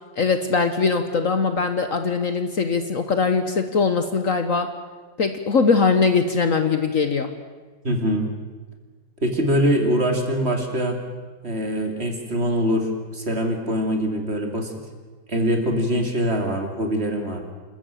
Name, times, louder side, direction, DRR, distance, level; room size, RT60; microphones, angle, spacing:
voice 1, 0.2-4.7 5.2-7.3, left 4 dB, 50° left, 8 dB, 1.4 m, -21 dB
voice 2, 7.8-8.3 9.2-11.0 11.4-14.7 15.3-17.4, equal, 35° right, 3 dB, 3.0 m, -23 dB
27.5 x 13.5 x 9.0 m, 1.4 s
omnidirectional pair, 2.0 m